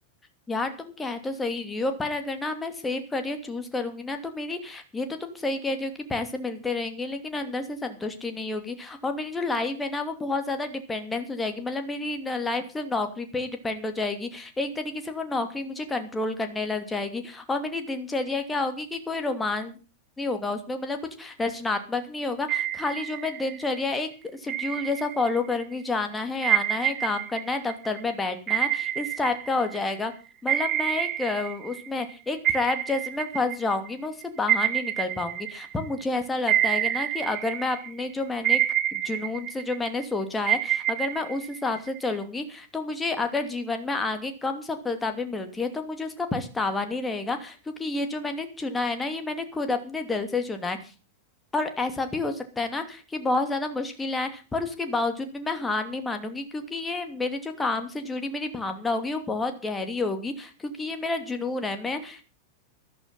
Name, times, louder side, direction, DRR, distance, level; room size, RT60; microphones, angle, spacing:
voice 1, 0.5-19.8 20.2-24.1 24.4-30.1 30.4-38.6 38.9-50.8 51.5-62.2, left 3 dB, 10° left, 6 dB, 2.7 m, -30 dB
sound 1, 22.5-23.8 24.5-25.6 26.4-30.0 30.5-32.1 32.4-36.0 36.5-38.0 38.4-40.0 40.5-42.2, right 12 dB, 35° right, 1.3 m, -28 dB
13.5 x 12.5 x 5.6 m, 0.34 s
figure-of-eight pair, 90°, 0 cm